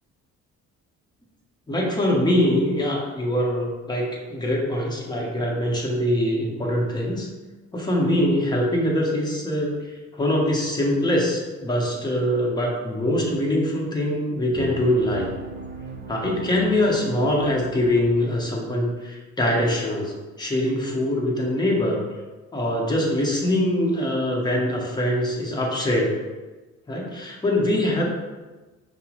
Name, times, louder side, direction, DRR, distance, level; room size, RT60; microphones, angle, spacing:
voice 1, 1.7-7.3 7.7-9.7 10.1-15.3 16.1-22.0 22.5-26.1 26.9-28.0, left 1 dB, 15° left, -2 dB, 0.9 m, -23 dB
sound 1, 14.5-18.5, right 4 dB, 35° right, 0.4 m, -38 dB
5.4 x 2.0 x 3.0 m, 1.2 s
cardioid pair, 90°, 30 cm